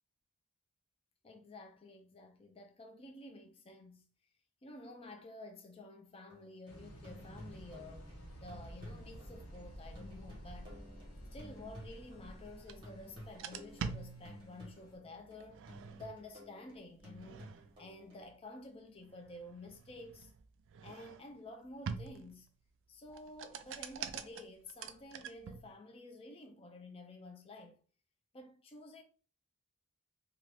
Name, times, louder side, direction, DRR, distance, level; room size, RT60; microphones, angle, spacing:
voice 1, 1.2-4.1 4.6-8.1 8.4-10.8 11.3-15.6 16.0-17.4 17.8-20.3 20.8-22.5 22.9-27.8 28.3-29.0, left 2 dB, 25° left, 0.4 m, -51 dB
sound 1, 6.3-12.6 12.8-18.3, equal, 25° right, 1.1 m, -54 dB
sound 2, 6.7-15.0, equal, 80° left, 1.1 m, -52 dB
sound 3, 12.7-12.8 13.2-14.8 15.4-16.2 17.0-17.9 19.0-21.4 21.8-22.5 23.1-25.8, right 6 dB, 60° right, 0.3 m, -45 dB
2.7 x 2.3 x 3.2 m
head